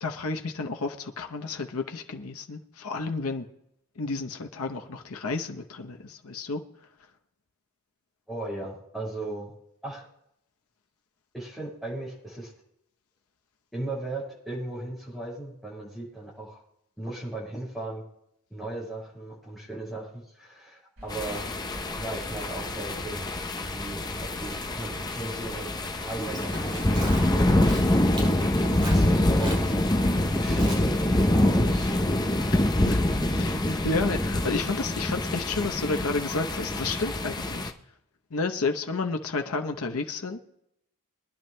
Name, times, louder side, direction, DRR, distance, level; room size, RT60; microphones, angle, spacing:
voice 1, 0.0-3.5 4.0-6.6 32.5-32.6 32.9-33.0 33.3-37.7 38.3-40.4, left 3 dB, 85° left, 5 dB, 0.8 m, -31 dB
voice 2, 8.3-9.5 9.8-10.0 11.3-12.5 13.7-16.6 17.0-18.0 18.5-21.5 21.9-23.2 23.7-27.8 28.6-29.8 30.4-32.0, right 2 dB, ahead, -5 dB, 6.1 m, -37 dB
Rain, 21.0-34.6, right 1 dB, 70° right, 4.3 m, -47 dB
sound 1, 21.1-37.7, left 1 dB, 20° left, 0.7 m, -25 dB
Livestock farm animals working animals, 26.1-32.6, equal, 25° right, 5.1 m, -42 dB
24.5 x 10.5 x 2.2 m, 0.78 s
head